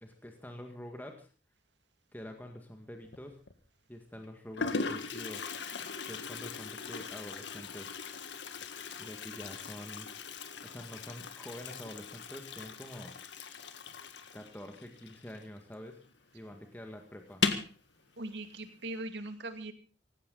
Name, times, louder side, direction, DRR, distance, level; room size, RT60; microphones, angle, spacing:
voice 1, 0.0-1.3 2.1-3.4 3.9-5.5 6.1-8.0 9.0-10.2 10.6-13.1 14.3-16.0 16.3-17.4, equal, 10° left, 4 dB, 1.9 m, -46 dB
Toilet flush, 3.0-3.5 4.2-4.3 4.6-15.9 16.1-16.2 16.5-16.6 17.3-17.8, left 4 dB, 70° left, 1.8 m, -39 dB
voice 2, 18.2-19.7, right 2 dB, 65° right, 7 dB, 2.4 m, -40 dB
18.5 x 17.0 x 4.0 m, 0.34 s
head